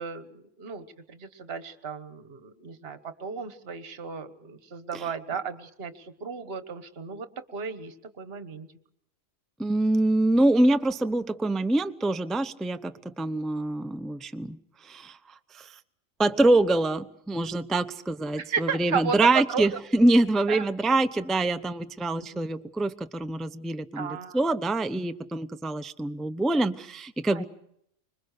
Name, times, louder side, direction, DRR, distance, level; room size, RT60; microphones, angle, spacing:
voice 1, 0.0-8.7 18.4-19.2 19.5-19.7 20.5-20.6 22.3-22.4 23.9-24.4 27.3-27.5, right 6 dB, 50° right, 10 dB, 1.5 m, -35 dB
voice 2, 9.6-14.6 14.8-15.2 15.5-15.7 16.2-27.5, right 2 dB, ahead, 10 dB, 0.6 m, -25 dB
25.5 x 22.0 x 6.6 m, 0.72 s
omnidirectional pair, 1.4 m